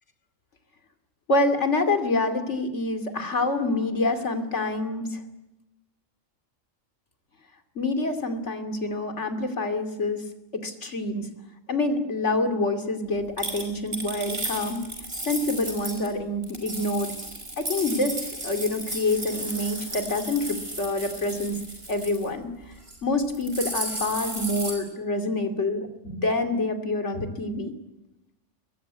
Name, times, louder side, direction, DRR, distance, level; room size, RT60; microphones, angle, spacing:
voice 1, 1.3-5.2 7.8-10.2 10.6-11.3 11.7-14.8 15.2-17.1 17.6-21.6 21.9-22.5 23.0-27.7, left 2 dB, 65° left, 7 dB, 3.0 m, -27 dB
sound 1, 13.4-16.1 16.4-22.3 22.7-23.0 23.2-24.7, right 1 dB, 50° right, 5.8 m, -34 dB
23.0 x 21.5 x 9.4 m, 0.95 s
omnidirectional pair, 1.3 m